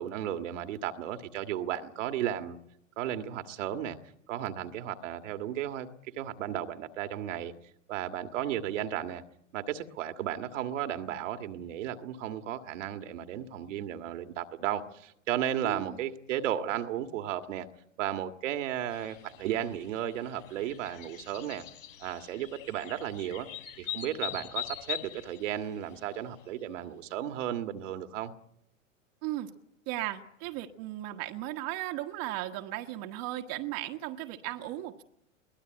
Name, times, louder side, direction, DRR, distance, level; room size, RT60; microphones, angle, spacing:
voice 1, 0.0-2.6 3.0-4.0 4.3-5.9 6.2-7.5 7.9-9.2 9.5-17.7 18.0-21.6 22.0-23.5 23.8-28.3, right 11 dB, 65° right, 7 dB, 1.9 m, -34 dB
voice 2, 15.6-15.9 29.2-29.5 29.9-35.0, right 15 dB, 45° right, 4 dB, 1.5 m, -36 dB
sound 1, 18.9-26.2, left 11 dB, 70° left, 3.3 m, -42 dB
23.0 x 18.0 x 8.9 m, 0.77 s
hypercardioid pair, 110°, 40 cm